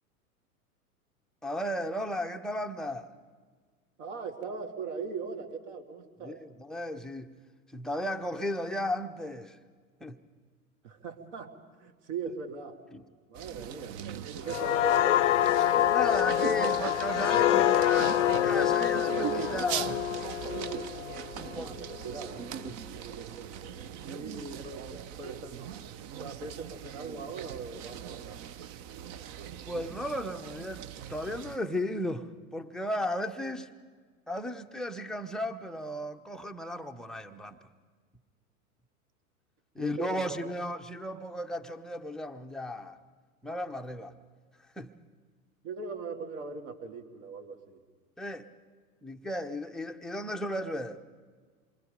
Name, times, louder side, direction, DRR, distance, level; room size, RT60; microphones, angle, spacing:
voice 1, 1.4-3.1 6.2-7.3 7.7-9.6 10.0-10.2 12.9-13.0 15.9-20.0 21.4-21.7 22.6-22.7 29.7-33.7 34.3-37.6 39.7-43.0 43.4-44.2 44.8-44.9 48.2-48.5 49.0-51.0, left 1 dB, ahead, 0.7 m, -35 dB
voice 2, 4.0-6.4 10.8-12.9 13.3-14.0 14.3-15.2 21.5-22.4 24.0-25.6 26.2-28.5 39.8-40.4 45.6-47.8, right 4 dB, 50° right, 2.7 m, -40 dB
sound 1, 13.4-31.6, right 9 dB, 30° right, 0.7 m, -40 dB
sound 2, 14.5-22.0 22.4-22.6, left 12 dB, 55° left, 0.7 m, -26 dB
27.5 x 23.5 x 5.2 m
figure-of-eight pair, 95°, 45 cm